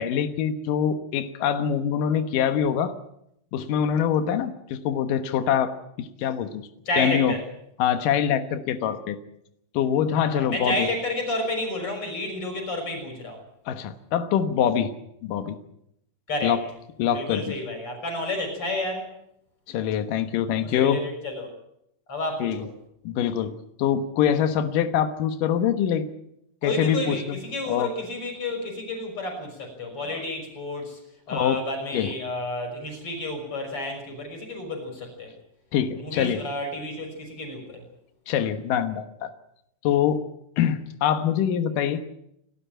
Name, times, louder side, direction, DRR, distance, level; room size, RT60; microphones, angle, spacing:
voice 1, 0.0-2.9 3.5-5.7 6.0-6.7 7.0-7.3 7.8-9.2 9.7-10.9 13.7-14.9 15.2-15.6 16.4-16.6 17.0-17.4 19.7-21.0 22.4-22.7 23.0-23.5 23.8-26.0 26.6-27.4 27.7-27.9 31.3-31.6 31.9-32.1 35.7-36.4 38.3-39.3 39.8-40.2 40.6-42.0, left 9 dB, 90° left, 9 dB, 1.9 m, -24 dB
voice 2, 6.8-7.4 10.1-13.4 16.3-16.6 17.1-19.1 20.5-21.5 22.1-22.7 26.6-31.0 31.3-35.3 36.0-37.8, left 2 dB, 30° left, 4 dB, 6.8 m, -31 dB
29.5 x 12.5 x 9.0 m, 0.78 s
omnidirectional pair, 5.7 m